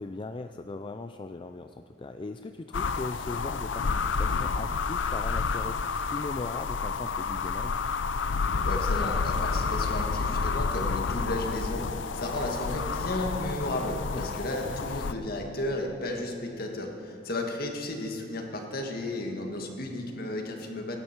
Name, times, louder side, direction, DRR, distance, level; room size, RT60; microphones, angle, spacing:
voice 1, 0.0-7.8 14.1-14.2, left 3 dB, 25° left, 8 dB, 0.4 m, -39 dB
sound 1, 2.7-15.1, left 5 dB, 85° left, 0.6 m, -30 dB
voice 2, 8.6-11.9 12.1-21.0, left 1 dB, 55° left, 2 dB, 1.9 m, -33 dB
17.5 x 12.0 x 4.5 m, 2.7 s
head